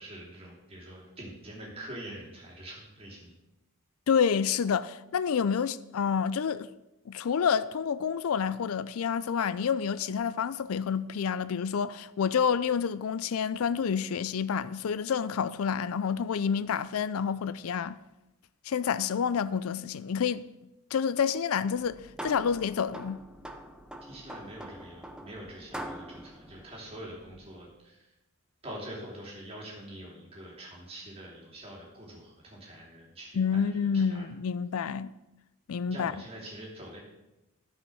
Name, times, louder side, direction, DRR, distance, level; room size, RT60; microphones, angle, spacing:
voice 1, 0.0-3.3 24.0-28.1 28.6-34.3 35.9-37.0, right 1 dB, 25° right, 3.0 m, -45 dB
voice 2, 4.1-6.7 7.1-18.0 18.6-20.4 20.9-23.2 33.4-35.1 35.7-36.1, left 7 dB, 75° left, 0.4 m, -28 dB
sound 1, 21.7-27.6, right 1 dB, 5° right, 0.5 m, -44 dB
12.5 x 5.5 x 6.3 m
head